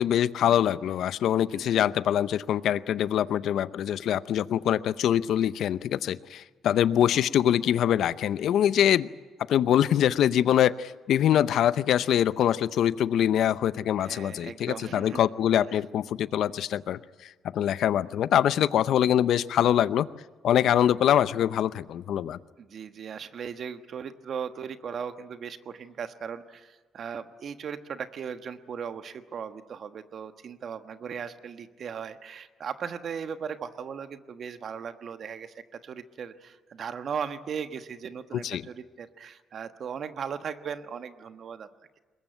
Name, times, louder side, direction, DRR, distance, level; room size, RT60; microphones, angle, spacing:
voice 1, 0.0-9.1 9.5-20.1 20.4-22.4 38.4-38.6, left 10 dB, 75° left, 16 dB, 0.6 m, -24 dB
voice 2, 14.0-15.2 22.6-41.7, right 7 dB, 60° right, 9 dB, 1.3 m, -37 dB
21.5 x 21.5 x 9.0 m, 1.4 s
cardioid pair, 90°, 0 cm